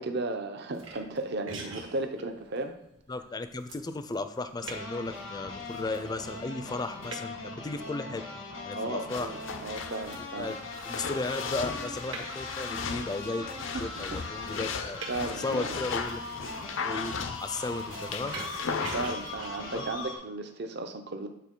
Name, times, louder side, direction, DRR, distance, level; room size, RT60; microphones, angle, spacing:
voice 1, 0.0-2.7 8.7-10.5 13.7-13.9 14.4-14.6 15.1-15.8 18.8-21.3, right 2 dB, 60° right, 6 dB, 0.6 m, -35 dB
sound 1, 0.7-20.0, right 3 dB, 85° right, 1.5 m, -48 dB
voice 2, 3.1-8.2 8.6-9.3 10.4-10.5 10.8-15.0 15.4-16.2 16.8-18.4 19.7-19.8, left 3 dB, 20° left, 10 dB, 0.4 m, -35 dB
sound 2, 4.6-20.2, left 3 dB, 90° left, 1.5 m, -40 dB
sound 3, 9.1-19.2, left 5 dB, 70° left, 0.5 m, -37 dB
8.3 x 3.8 x 3.7 m, 0.78 s
head